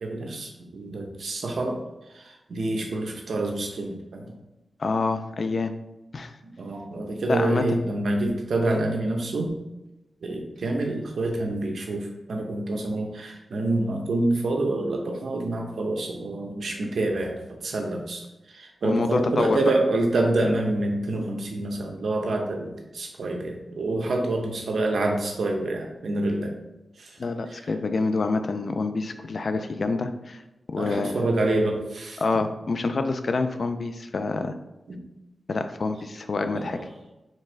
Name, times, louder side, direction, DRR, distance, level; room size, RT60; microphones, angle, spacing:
voice 1, 0.0-1.8 2.1-4.3 6.6-9.6 10.2-26.5 27.0-27.2 27.5-27.7 30.8-32.2 34.9-35.0 36.5-36.8, right 2 dB, 80° right, 1 dB, 0.8 m, -27 dB
voice 2, 4.8-5.7 6.1-6.3 7.3-7.8 18.8-19.6 27.2-30.4 30.7-31.2 32.2-34.5 35.5-36.8, left 3 dB, 60° left, 8 dB, 0.4 m, -27 dB
4.4 x 3.5 x 3.3 m, 0.99 s
wide cardioid pair, 80°, 0 cm